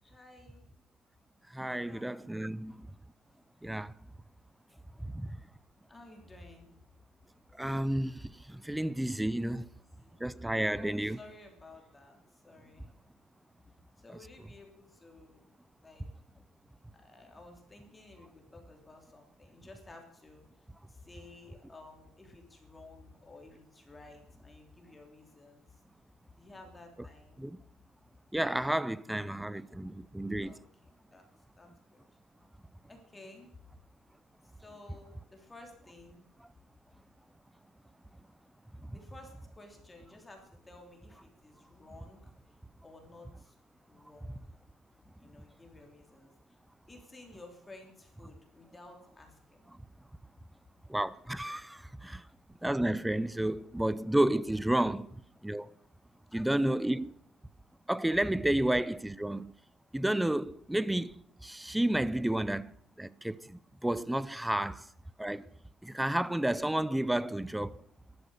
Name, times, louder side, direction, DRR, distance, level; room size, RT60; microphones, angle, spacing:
voice 1, 0.0-0.6 1.8-2.1 2.4-2.7 5.9-6.7 8.6-8.8 10.0-10.2 10.7-12.9 14.0-15.4 15.8-16.1 16.9-20.5 20.9-25.8 26.4-27.5 29.1-30.0 30.4-30.6 31.0-31.3 31.6-32.0 32.9-33.5 34.6-36.2 38.9-42.3 42.8-43.5 43.9-44.4 45.2-46.6 46.9-49.7 51.7-51.8 53.4-53.7 54.9-55.0 56.3-57.0, left 2 dB, 15° left, 3.2 m, -54 dB
voice 2, 1.5-2.9 3.6-3.9 5.1-5.4 7.6-9.7 10.2-11.2 27.4-27.6 28.3-30.6 50.9-52.2 52.6-55.7 56.3-57.1 57.9-59.5 59.9-62.7 63.0-64.9 65.2-65.5 65.8-67.8, right 1 dB, 5° right, 0.5 m, -31 dB
13.5 x 12.5 x 6.5 m
cardioid pair, 145°, 0 cm